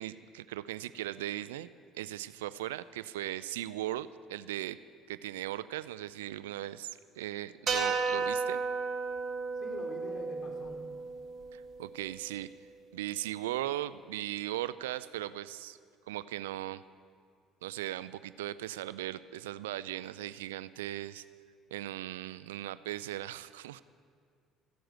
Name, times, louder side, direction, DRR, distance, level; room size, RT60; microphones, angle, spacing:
voice 1, 0.0-1.7 1.9-4.8 5.1-8.6 11.5-12.5 12.9-15.8 16.1-16.8 17.6-21.2 21.7-23.8, right 14 dB, 90° right, 16 dB, 0.3 m, -38 dB
sound 1, 7.7-12.0, right 4 dB, 45° right, 2.3 m, -34 dB
voice 2, 9.5-10.9, left 2 dB, 50° left, 1 dB, 3.3 m, -45 dB
14.5 x 7.8 x 9.0 m, 2.2 s
hypercardioid pair, 65°, 0 cm